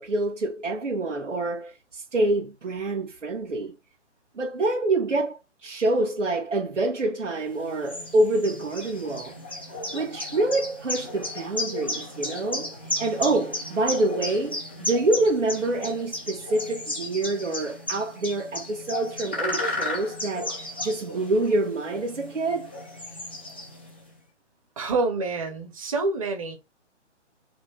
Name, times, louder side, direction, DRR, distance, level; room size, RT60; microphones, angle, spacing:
voice 1, 0.0-3.7 4.3-9.4 9.9-22.7, right 2 dB, 90° right, 2.8 m, -26 dB
sound 1, 7.5-24.0, left 2 dB, 10° left, 0.6 m, -34 dB
voice 2, 24.8-26.5, right 3 dB, 30° right, 2.0 m, -27 dB
5.2 x 3.9 x 5.2 m
hypercardioid pair, 175°, 36 cm